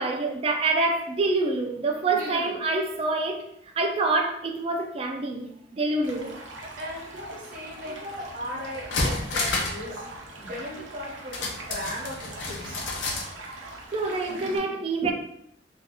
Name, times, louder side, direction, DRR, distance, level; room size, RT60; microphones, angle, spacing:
voice 1, 0.0-3.4 3.8-6.4 8.0-8.3 13.4-15.1, right 3 dB, 30° right, 3 dB, 0.3 m, -27 dB
voice 2, 2.1-2.6 6.8-12.9, left 1 dB, 50° right, -3 dB, 1.0 m, -38 dB
Stream, 6.0-14.6, right 2 dB, 85° right, 0.7 m, -42 dB
sound 1, 8.3-8.4 8.7-9.9 10.1-10.2 11.3-13.3 13.6-13.7, left 2 dB, 70° left, 0.6 m, -29 dB
2.6 x 2.4 x 3.4 m, 0.75 s
head